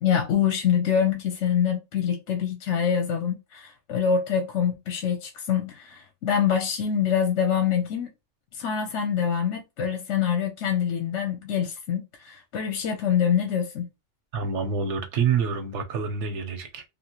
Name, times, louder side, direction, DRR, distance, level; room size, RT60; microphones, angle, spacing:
voice 1, 0.0-8.1 8.5-13.9, left 8 dB, 80° left, 0.9 m, -25 dB
voice 2, 14.3-16.8, right 6 dB, 90° right, 1.0 m, -27 dB
2.9 x 2.4 x 2.8 m
omnidirectional pair, 1.2 m